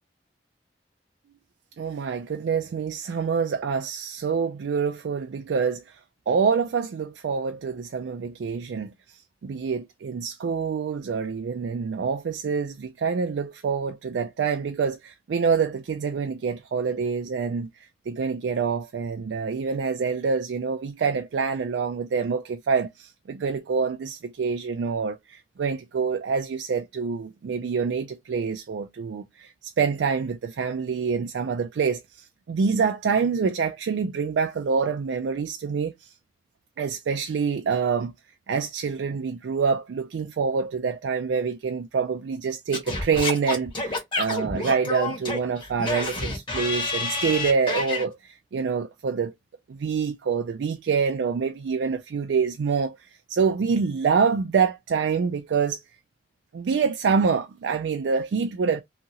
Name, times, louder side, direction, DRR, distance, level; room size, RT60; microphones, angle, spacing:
voice 1, 1.8-6.0 6.3-8.9 9.4-17.7 18.1-36.1 36.8-38.1 38.5-49.3 49.7-53.0 53.3-55.8 56.5-58.8, right 5 dB, 80° right, 0.3 m, -26 dB
Singing / Scratching (performance technique), 42.7-48.0, left 3 dB, 30° left, 1.3 m, -29 dB
2.8 x 2.5 x 2.7 m
head